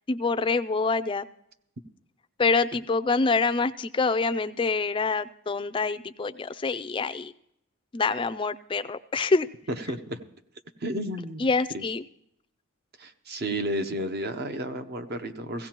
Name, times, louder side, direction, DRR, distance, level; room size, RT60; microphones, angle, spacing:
voice 1, 0.1-1.3 2.4-7.3 7.9-9.5 11.4-12.0, left 4 dB, 25° left, 13 dB, 0.4 m, -26 dB
voice 2, 9.7-10.2 10.8-11.5 11.7-11.8 13.0-15.7, right 1 dB, 50° right, 8 dB, 0.8 m, -32 dB
16.5 x 16.0 x 3.0 m, 0.74 s
head